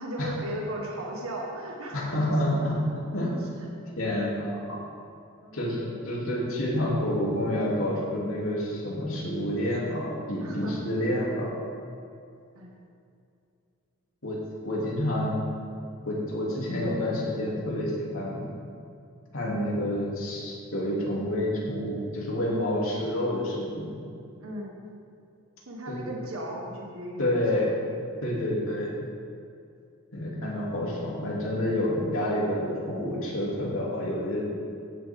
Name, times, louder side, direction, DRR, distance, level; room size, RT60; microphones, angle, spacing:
voice 1, 0.0-2.1 3.6-3.7 4.2-4.3 5.4-5.7 10.4-10.8 12.5-12.7 24.4-24.7 25.7-27.6, right 1 dB, 80° right, -1 dB, 1.4 m, -36 dB
voice 2, 1.9-2.8 3.1-3.3 4.0-4.6 5.5-11.5 14.2-14.4 14.6-15.4 16.1-18.4 19.3-24.0 25.9-26.1 27.2-27.7 28.2-28.9 30.1-34.4, left 1 dB, 75° left, -5 dB, 2.8 m, -28 dB
15.5 x 7.1 x 3.7 m, 2.5 s
head